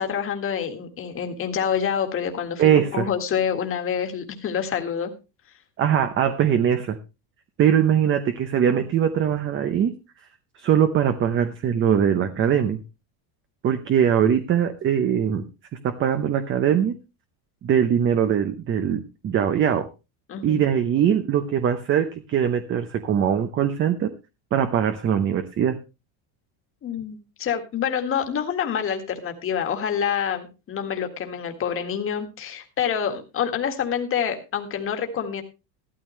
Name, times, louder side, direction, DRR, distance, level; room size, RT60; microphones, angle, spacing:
voice 1, 0.0-5.1 20.3-20.6 26.8-35.4, left 8 dB, 25° left, 5 dB, 1.8 m, -27 dB
voice 2, 2.6-3.1 5.8-7.0 7.6-9.9 10.6-12.8 13.6-15.4 15.8-16.9 17.6-19.9 20.4-24.1 24.5-25.8, right 9 dB, 25° right, 9 dB, 0.7 m, -21 dB
14.0 x 12.5 x 3.1 m, 0.28 s
cardioid pair, 160°, 47 cm